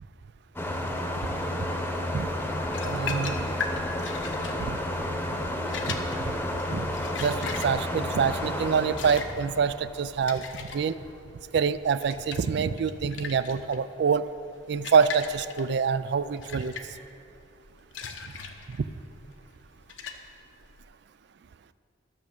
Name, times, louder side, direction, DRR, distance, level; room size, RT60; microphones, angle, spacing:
sound 1, 0.6-10.8, left 1 dB, 10° left, 0.9 m, -31 dB
sound 2, 2.7-20.8, left 5 dB, 85° left, 0.9 m, -40 dB
voice 1, 2.8-3.5 4.6-4.8 5.4-5.5 5.9-6.0 6.7-6.9 7.2-11.0 11.5-14.2 14.7-16.7 18.7-18.9, right 6 dB, 65° right, 14 dB, 0.4 m, -26 dB
13.0 x 6.1 x 7.1 m, 2.6 s
head